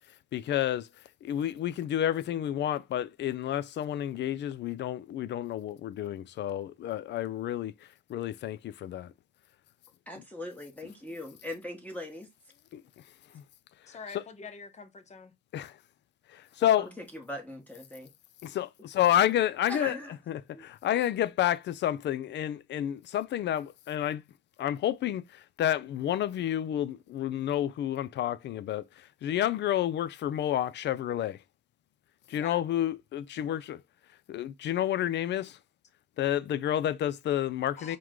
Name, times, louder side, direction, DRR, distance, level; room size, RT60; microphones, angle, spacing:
voice 1, 0.3-0.9 1.2-7.7 8.1-9.1 12.7-12.8 13.3-13.4 14.1-14.2 15.5-15.8 16.3-16.9 18.4-20.0 20.3-24.2 24.6-31.4 32.3-33.8 34.3-35.6 36.2-38.0, left 11 dB, 60° left, 0.4 m, -30 dB
voice 2, 10.1-12.3 16.8-18.1 19.7-20.1 20.5-20.7, equal, 10° left, 1.0 m, -40 dB
voice 3, 13.9-15.3 32.3-32.6 37.8-38.0, left 6 dB, 35° left, 0.8 m, -44 dB
4.7 x 2.2 x 3.7 m
cardioid pair, 90°, 20 cm